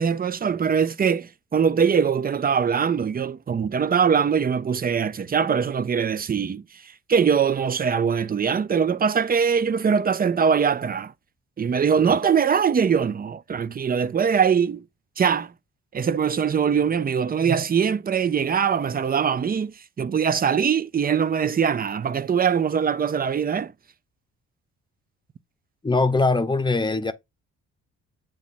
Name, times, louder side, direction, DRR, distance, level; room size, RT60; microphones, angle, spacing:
voice 1, 0.0-11.1 11.6-14.8 15.2-15.5 15.9-23.7, right 7 dB, 30° right, 0.6 m, -22 dB
voice 2, 25.8-27.1, left 3 dB, 15° left, 0.8 m, -21 dB
8.8 x 3.0 x 4.1 m
cardioid pair, 90°, 30 cm